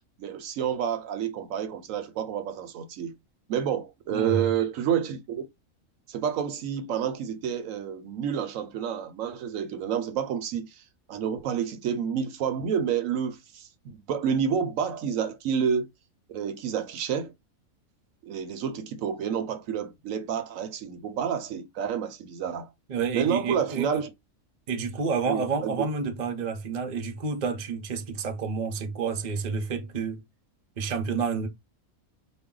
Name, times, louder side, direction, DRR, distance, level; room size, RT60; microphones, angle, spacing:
voice 1, 0.2-3.1 3.5-5.4 6.1-15.9 16.3-17.3 18.2-22.7 23.1-24.1 25.3-25.7, right 8 dB, 70° right, 1.0 m, -29 dB
voice 2, 4.1-4.5 22.9-24.1 24.7-30.2 30.8-31.5, right 5 dB, 45° right, 0.6 m, -29 dB
4.2 x 2.2 x 3.7 m
omnidirectional pair, 1.5 m